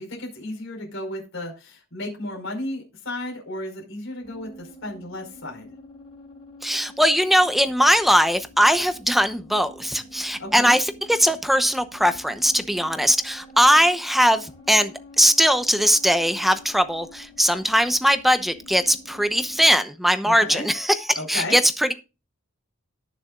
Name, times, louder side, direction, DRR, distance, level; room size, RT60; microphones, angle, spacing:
voice 1, 0.0-5.7 10.4-10.8 20.2-20.7 21.1-21.6, left 1 dB, 65° left, 0 dB, 5.1 m, -33 dB
sound 1, 4.2-19.8, left 1 dB, 25° left, 5.4 m, -47 dB
voice 2, 6.6-21.9, equal, ahead, 10 dB, 0.8 m, -20 dB
18.5 x 6.9 x 2.5 m, 0.29 s
head